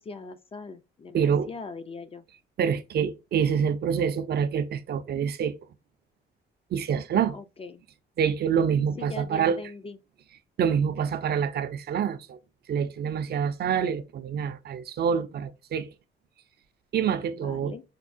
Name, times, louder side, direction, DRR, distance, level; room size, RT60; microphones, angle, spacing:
voice 1, 0.0-2.2 7.3-7.8 8.9-10.0 17.3-17.8, left 4 dB, 30° left, 0.4 m, -41 dB
voice 2, 1.1-1.5 2.6-5.6 6.7-7.4 8.2-9.6 10.6-12.4 12.7-15.9 16.9-17.7, right 7 dB, 55° right, 0.4 m, -26 dB
4.4 x 2.3 x 2.5 m
cardioid pair, 90°, 20 cm